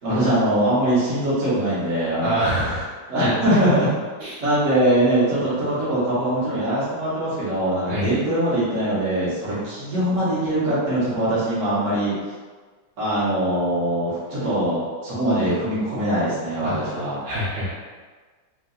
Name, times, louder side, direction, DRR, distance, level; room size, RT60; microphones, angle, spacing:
voice 1, 0.0-2.5 3.1-3.9 4.4-12.2 13.0-17.2, right 1 dB, 45° right, -10 dB, 1.3 m, -22 dB
voice 2, 2.2-2.9 4.2-4.4 7.9-8.1 16.6-16.9 17.2-17.7, right 1 dB, 70° right, -10 dB, 1.8 m, -25 dB
3.8 x 2.6 x 2.4 m, 1.4 s
omnidirectional pair, 2.0 m